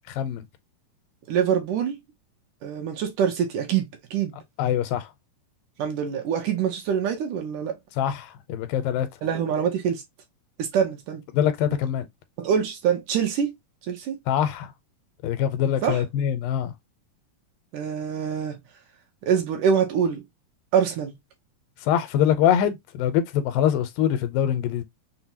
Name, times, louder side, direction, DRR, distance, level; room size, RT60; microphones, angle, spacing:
voice 1, 1.3-2.0 2.6-4.4 5.8-7.8 9.2-10.0 10.6-11.2 12.4-13.5 13.9-14.2 15.8-16.0 17.7-18.6 19.2-20.2 20.7-21.1, right 7 dB, 75° right, 2.3 m, -25 dB
voice 2, 4.6-5.1 8.0-9.1 11.3-12.0 14.3-14.7 15.2-16.7 21.8-24.8, left 10 dB, 85° left, 2.3 m, -23 dB
6.0 x 2.2 x 2.7 m
omnidirectional pair, 4.0 m